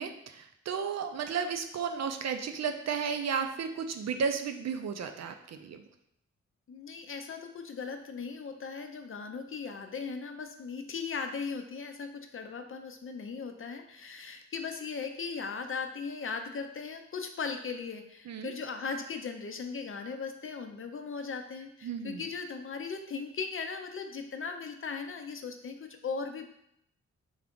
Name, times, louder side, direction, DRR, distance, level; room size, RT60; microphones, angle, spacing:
voice 1, 0.0-5.8 18.3-18.5 21.8-22.3, right 6 dB, 60° right, 6 dB, 0.5 m, -33 dB
voice 2, 6.7-26.5, left 5 dB, 45° left, 6 dB, 0.5 m, -38 dB
3.5 x 2.4 x 3.6 m, 0.75 s
cardioid pair, 55°, 31 cm